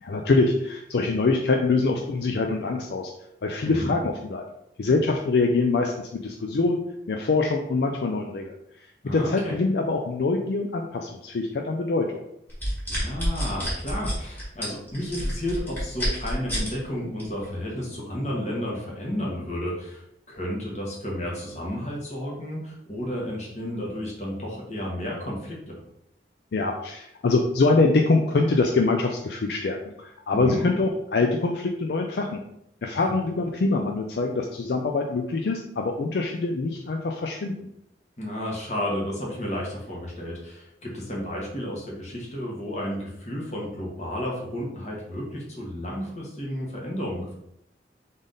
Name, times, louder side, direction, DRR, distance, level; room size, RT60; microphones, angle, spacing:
voice 1, 0.0-3.1 3.4-4.4 4.8-6.8 7.1-8.5 9.1-12.2 26.5-32.4 32.8-37.5, left 3 dB, 70° left, 3 dB, 0.4 m, -24 dB
voice 2, 3.6-3.9 9.0-9.5 12.9-25.8 30.3-30.7 32.9-33.1 38.2-47.3, equal, 40° left, -3 dB, 1.3 m, -32 dB
sound 1, 12.5-16.7 17.2-17.4, equal, 10° left, 1.8 m, -28 dB
3.9 x 3.6 x 3.8 m, 0.79 s
head